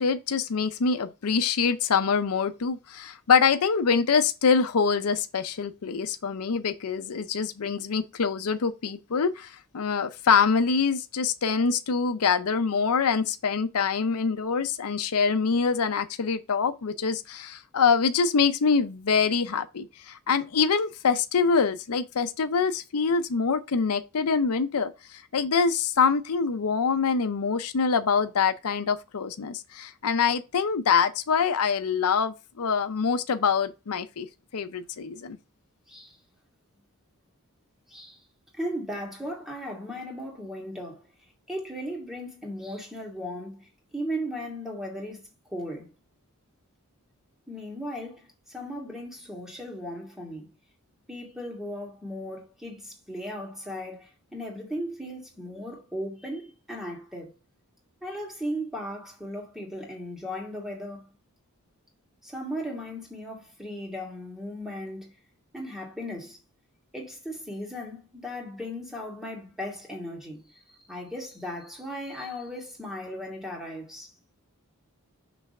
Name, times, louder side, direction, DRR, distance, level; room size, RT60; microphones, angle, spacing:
voice 1, 0.0-34.3 34.5-35.4, left 5 dB, 85° left, 0.6 m, -25 dB
voice 2, 38.5-41.0 41.5-45.9 47.5-50.5 51.1-57.3 58.0-61.1 62.2-65.1 65.5-66.4 66.9-70.5 70.9-74.1, equal, ahead, 2.2 m, -37 dB
6.1 x 3.4 x 5.3 m
head